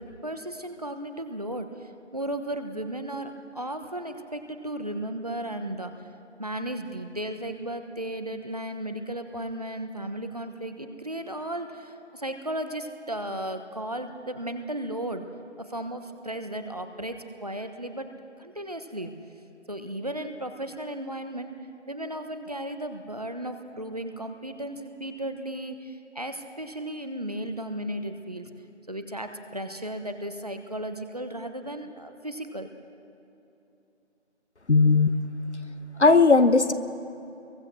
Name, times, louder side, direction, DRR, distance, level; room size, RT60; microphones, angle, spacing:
voice 1, 0.0-1.7 2.1-5.9 6.4-15.2 15.6-18.1 18.4-19.1 19.7-21.5 21.9-28.5 28.9-32.7, right 1 dB, 35° right, 7 dB, 1.2 m, -35 dB
voice 2, 34.7-35.1 36.0-36.7, left 4 dB, 70° left, 11 dB, 1.4 m, -17 dB
27.0 x 23.0 x 6.2 m, 2.8 s
figure-of-eight pair, 175°, 36 cm